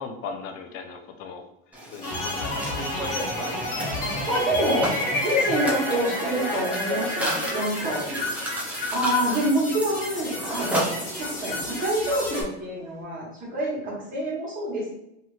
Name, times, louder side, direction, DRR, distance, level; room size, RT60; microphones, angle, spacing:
voice 1, 0.0-1.4 1.9-3.2, left 5 dB, 45° left, 5 dB, 0.5 m, -38 dB
Mechanisms, 1.7-11.5, right 1 dB, 5° right, 0.4 m, -34 dB
sound 1, 2.0-12.4, left 1 dB, 25° left, 1.2 m, -30 dB
voice 2, 4.3-5.0 5.2-8.1 8.9-15.0, right 1 dB, 25° right, -4 dB, 1.3 m, -27 dB
Water / Toilet flush, 6.8-13.0, right 2 dB, 75° right, 1.3 m, -43 dB
2.8 x 2.5 x 3.1 m, 0.82 s
supercardioid pair, 140°, 30 cm